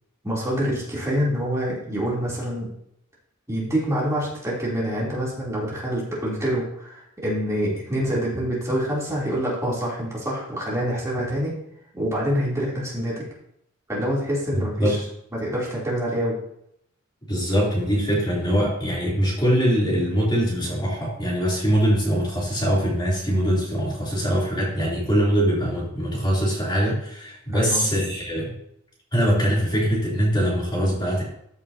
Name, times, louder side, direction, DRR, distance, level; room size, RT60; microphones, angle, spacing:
voice 1, 0.2-2.7 3.5-11.5 11.9-13.2 13.9-15.0 15.3-16.4 27.5-27.9, equal, 15° right, -6 dB, 3.1 m, -26 dB
voice 2, 14.5-15.0 17.3-28.5 29.1-31.2, equal, 20° left, -6 dB, 3.2 m, -22 dB
14.0 x 6.9 x 2.8 m, 0.74 s
head